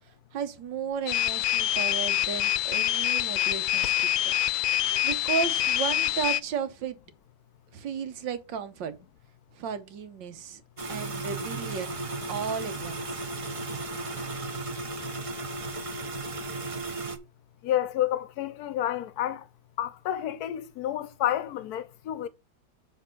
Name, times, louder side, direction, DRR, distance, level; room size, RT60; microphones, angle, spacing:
voice 1, 0.1-3.9 4.2-4.3 5.0-7.0 7.7-8.9 9.5-10.6 10.9-11.9 12.3-13.2, right 7 dB, 75° right, 1.7 m, -34 dB
sound 1, 1.1-6.4, left 13 dB, 85° left, 1.3 m, -26 dB
sound 2, 10.8-17.2, right 2 dB, 45° right, 0.4 m, -35 dB
voice 2, 17.6-19.4 19.8-22.3, left 12 dB, 65° left, 1.1 m, -30 dB
6.1 x 4.5 x 5.9 m
omnidirectional pair, 2.1 m